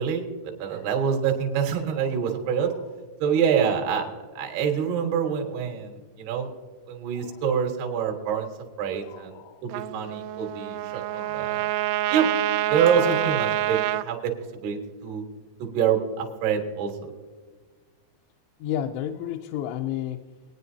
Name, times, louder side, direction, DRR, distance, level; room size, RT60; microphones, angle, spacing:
voice 1, 0.0-2.7 3.2-4.1 4.4-6.5 6.9-8.5 8.8-9.3 9.6-11.7 12.1-12.3 12.7-14.3 14.6-15.2 15.6-17.1, right 7 dB, 65° right, 2 dB, 3.3 m, -26 dB
voice 2, 2.0-2.8 4.4-4.5 7.2-7.4 9.0-9.6 11.1-11.7 13.1-13.2 18.6-20.2, left 11 dB, 85° left, 5 dB, 2.9 m, -34 dB
Trumpet, 9.7-14.1, right 15 dB, 90° right, 2.9 m, -27 dB
22.5 x 9.6 x 2.7 m, 1.4 s
omnidirectional pair, 5.3 m